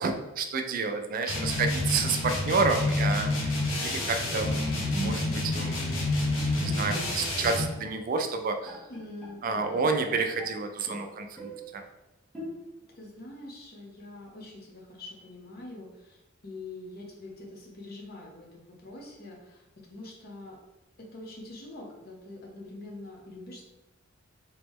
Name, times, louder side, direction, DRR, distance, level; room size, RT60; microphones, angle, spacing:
voice 1, 0.0-5.8 6.5-8.8 9.4-11.8, right 4 dB, 45° right, 5 dB, 0.3 m, -30 dB
sound 1, 1.3-7.7, left 2 dB, 75° left, 0.9 m, -29 dB
Bowed string instrument, 4.3-7.4 7.7-7.9 8.3-8.4 8.7-10.6 10.9-11.7 12.3-12.9, right 1 dB, 5° left, 0.8 m, -40 dB
voice 2, 8.9-9.9 13.0-20.6 21.0-23.6, left 2 dB, 50° left, 0 dB, 0.8 m, -44 dB
3.0 x 2.9 x 3.5 m, 0.99 s
head